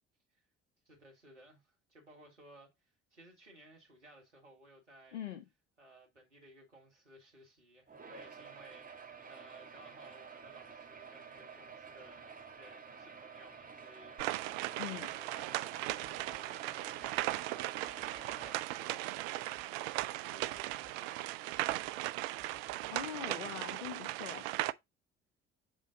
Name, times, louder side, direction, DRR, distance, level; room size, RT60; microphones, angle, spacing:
voice 1, 0.8-5.2 5.8-17.8 18.1-21.6, right 1 dB, 85° right, 1.6 m, -59 dB
voice 2, 5.1-5.4 14.8-15.1 22.9-24.5, left 9 dB, 80° left, 0.7 m, -42 dB
sound 1, 7.9-18.6, right 5 dB, 25° right, 1.7 m, -51 dB
sound 2, 14.2-24.7, right 17 dB, 60° right, 0.5 m, -37 dB
sound 3, 15.9-16.5 17.0-17.4 17.9-18.8 19.5-19.6 20.0-20.1 20.4-21.0 21.5-21.9 22.4-23.3, left 5 dB, 35° left, 1.1 m, -64 dB
7.4 x 3.9 x 3.8 m
figure-of-eight pair, 50°, 35 cm